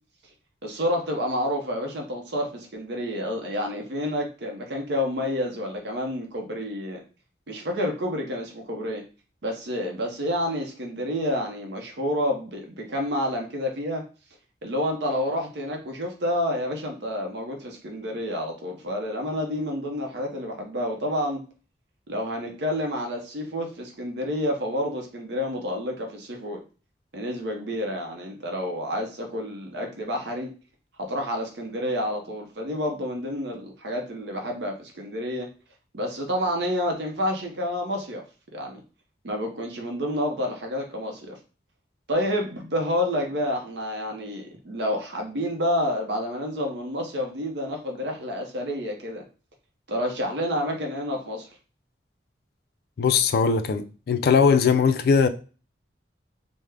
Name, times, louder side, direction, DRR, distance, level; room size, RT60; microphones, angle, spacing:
voice 1, 0.6-7.0 7.5-9.0 9.4-14.1 14.6-21.4 22.1-26.6 27.1-30.5 31.0-35.5 35.9-38.2 38.5-38.8 39.2-41.4 42.1-49.2 49.9-51.5, left 1 dB, 65° right, 0.6 m, -29 dB
voice 2, 53.0-55.3, left 5 dB, 55° left, 0.3 m, -20 dB
3.5 x 2.0 x 3.3 m
head